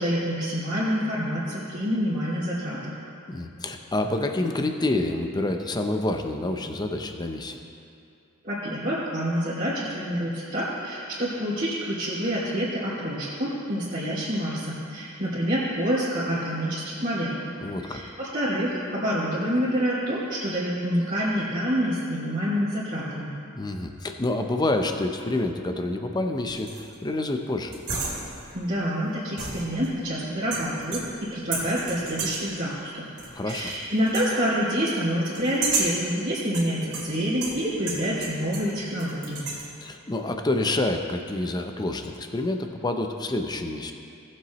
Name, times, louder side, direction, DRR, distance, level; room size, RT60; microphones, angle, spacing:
voice 1, 0.0-2.9 8.4-17.5 17.8-23.3 28.5-33.0 33.4-39.4, equal, 40° right, -12 dB, 2.5 m, -27 dB
voice 2, 3.3-7.6 17.6-18.0 23.5-27.7 33.3-33.7 39.8-43.9, left 2 dB, 20° left, 5 dB, 0.6 m, -28 dB
sound 1, 26.5-26.9 27.7-28.6 29.4-30.1 30.5-31.2 31.5-32.6 33.2-33.8 34.1-34.3 35.3-36.1 36.5-38.7 39.0-39.7, right 4 dB, 80° right, 2.5 m, -32 dB
18.0 x 7.6 x 3.0 m, 2.6 s
head